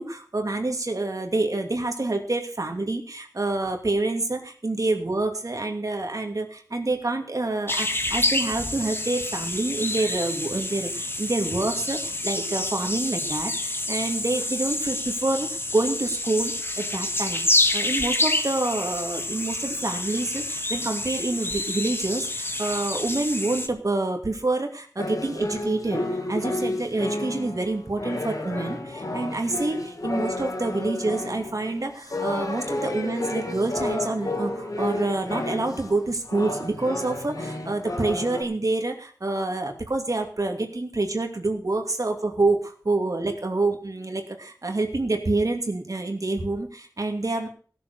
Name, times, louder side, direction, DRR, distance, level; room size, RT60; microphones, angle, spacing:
voice 1, 0.0-17.5 17.7-47.5, right 2 dB, 60° right, 4 dB, 2.6 m, -27 dB
sound 1, 7.7-23.7, left 2 dB, 35° left, 1.6 m, -28 dB
sound 2, 25.0-36.0 36.3-38.4, left 2 dB, 60° left, 3.3 m, -31 dB
16.5 x 7.5 x 6.8 m, 0.43 s
wide cardioid pair, 65°, 7 cm